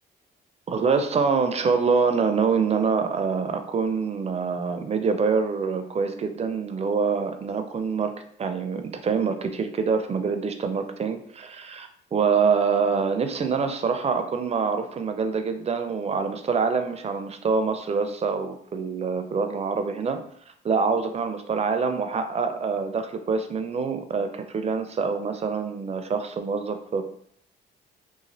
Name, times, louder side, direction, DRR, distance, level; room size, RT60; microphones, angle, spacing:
voice 1, 0.7-8.1 8.4-20.2 20.6-27.0, right 5 dB, 35° right, 8 dB, 0.4 m, -25 dB
3.0 x 2.3 x 2.7 m, 0.65 s
cardioid pair, 90°, 20 cm